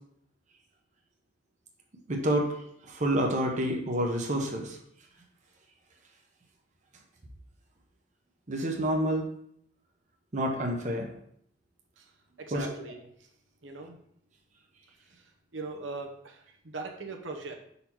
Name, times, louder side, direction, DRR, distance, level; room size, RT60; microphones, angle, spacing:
voice 1, 2.1-4.8 8.5-9.3 10.3-11.1 12.5-12.7, right 1 dB, 40° right, 1 dB, 0.9 m, -28 dB
voice 2, 12.4-13.3 13.6-14.0 15.0-17.7, right 3 dB, 80° right, 2 dB, 0.9 m, -41 dB
5.5 x 4.1 x 4.4 m, 0.68 s
head